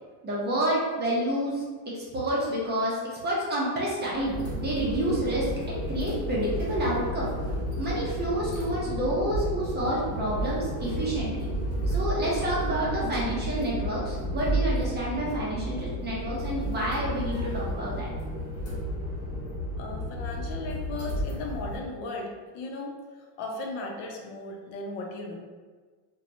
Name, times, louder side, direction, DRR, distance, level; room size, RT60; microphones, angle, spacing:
voice 1, 0.2-1.6 1.9-7.3 7.8-11.5 11.9-18.1, right 1 dB, 20° right, -6 dB, 0.6 m, -29 dB
sound 1, 4.1-21.8, equal, 40° left, 1.0 m, -32 dB
voice 2, 19.8-25.4, left 2 dB, 70° left, 1 dB, 0.7 m, -36 dB
2.8 x 2.3 x 2.6 m, 1.4 s
cardioid pair, 135°, 49 cm